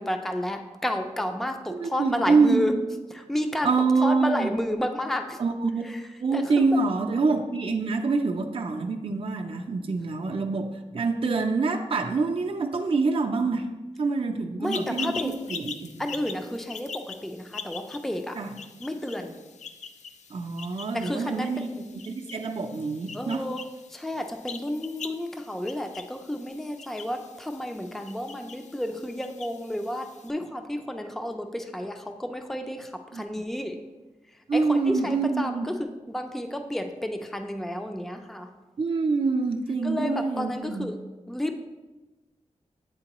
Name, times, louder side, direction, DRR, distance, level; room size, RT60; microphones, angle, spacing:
voice 1, 0.0-2.7 3.1-5.4 5.8-6.0 6.3-6.8 14.6-15.3 16.0-18.4 18.8-19.3 20.9-21.8 23.1-23.6 23.9-33.8 34.5-38.5 39.8-41.0 41.3-41.6, left 1 dB, 5° left, 5 dB, 0.4 m, -31 dB
voice 2, 1.7-2.6 3.6-4.5 5.4-5.9 6.2-13.7 14.0-16.1 18.3-18.5 20.3-21.7 21.9-23.5 33.1-33.4 34.5-35.7 38.8-40.9, right 4 dB, 50° right, 2 dB, 0.5 m, -26 dB
sound 1, 14.6-30.3, left 6 dB, 75° left, 0.4 m, -42 dB
8.7 x 3.7 x 3.0 m, 1.2 s
cardioid pair, 70°, 12 cm